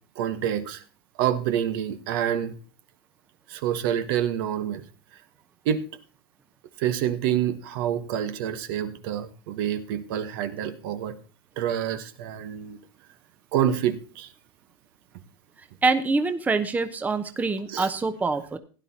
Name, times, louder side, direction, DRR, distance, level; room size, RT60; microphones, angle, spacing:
voice 1, 0.2-0.8 1.2-2.5 3.5-4.8 5.6-5.8 6.8-11.1 11.6-12.8 13.5-14.3 17.7-17.9, right 10 dB, 65° right, 10 dB, 1.2 m, -27 dB
voice 2, 15.8-18.6, right 3 dB, 15° right, 9 dB, 0.8 m, -25 dB
16.5 x 10.5 x 2.9 m, 0.38 s
supercardioid pair, 125°, 12 cm